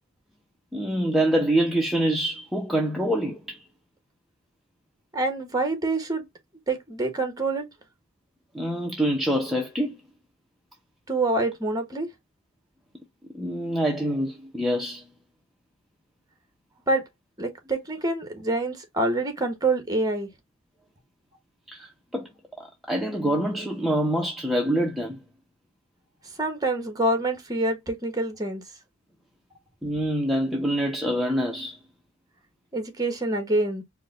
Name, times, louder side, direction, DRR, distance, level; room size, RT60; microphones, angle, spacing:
voice 1, 0.7-3.6 8.5-9.9 13.3-15.0 21.7-22.3 22.6-25.2 29.8-31.8, right 1 dB, ahead, 0.6 m, -25 dB
voice 2, 5.1-6.2 6.7-7.6 11.1-12.1 16.9-17.0 17.4-20.3 26.4-28.6 32.7-33.8, right 2 dB, 20° right, 1.2 m, -26 dB
4.8 x 2.2 x 3.8 m
head